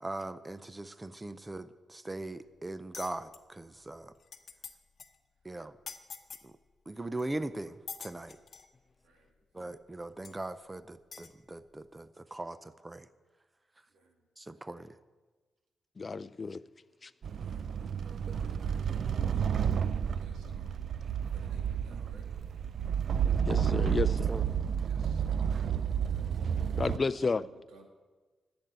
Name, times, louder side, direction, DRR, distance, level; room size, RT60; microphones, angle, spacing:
voice 1, 0.0-4.1 5.4-5.7 6.4-6.5 6.9-7.7 8.0-8.4 9.5-13.1 14.4-14.9 24.3-24.5, right 2 dB, 15° right, 14 dB, 0.6 m, -40 dB
sound 1, 2.9-3.4 3.9-4.0 4.2-4.7 5.0-5.2 5.9-6.5 7.2-7.3 7.9-8.7 9.6-9.7 10.2-10.3 11.1-11.3, left 5 dB, 50° left, 1.0 m, -45 dB
voice 2, 16.0-16.6 17.0-17.1 23.5-24.3 26.8-27.4, left 4 dB, 35° left, 14 dB, 0.4 m, -31 dB
sound 2, 17.2-27.0, right 8 dB, 65° right, 0.4 m, -31 dB
voice 3, 17.4-17.7 18.5-19.7 20.0-20.8 21.2-22.3 24.8-27.9, right 3 dB, 90° right, 3 dB, 2.2 m, -58 dB
11.0 x 7.9 x 9.3 m, 1.3 s
cardioid pair, 95°, 0 cm